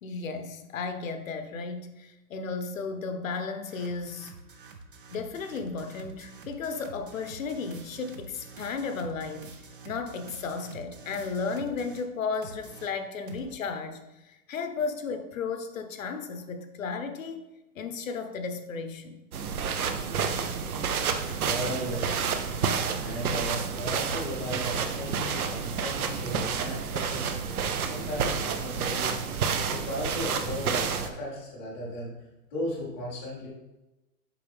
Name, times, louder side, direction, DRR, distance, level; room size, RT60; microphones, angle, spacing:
voice 1, 0.0-4.3 5.1-9.6 9.8-17.5 17.7-19.2 21.3-21.6, left 4 dB, 55° left, 8 dB, 0.8 m, -34 dB
sound 1, 3.6-12.1 12.4-13.5, right 4 dB, 35° right, 0.5 m, -47 dB
sound 2, 19.3-31.1, right 6 dB, 65° right, 0.9 m, -29 dB
voice 2, 21.4-22.2 23.0-29.2 29.7-32.1 32.5-33.5, left 1 dB, 10° left, -9 dB, 0.6 m, -36 dB
7.5 x 5.3 x 3.4 m, 1.0 s
hypercardioid pair, 170°, 47 cm